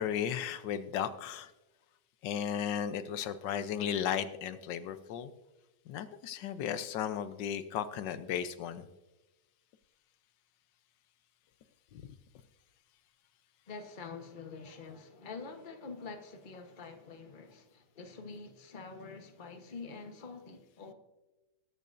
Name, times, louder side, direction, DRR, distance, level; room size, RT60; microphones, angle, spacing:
voice 1, 0.0-1.5 2.2-5.3 5.9-8.8 11.9-12.0, left 9 dB, 90° left, 1.4 m, -35 dB
voice 2, 13.7-20.9, left 4 dB, 30° left, 1.2 m, -46 dB
20.0 x 8.7 x 2.6 m
omnidirectional pair, 1.9 m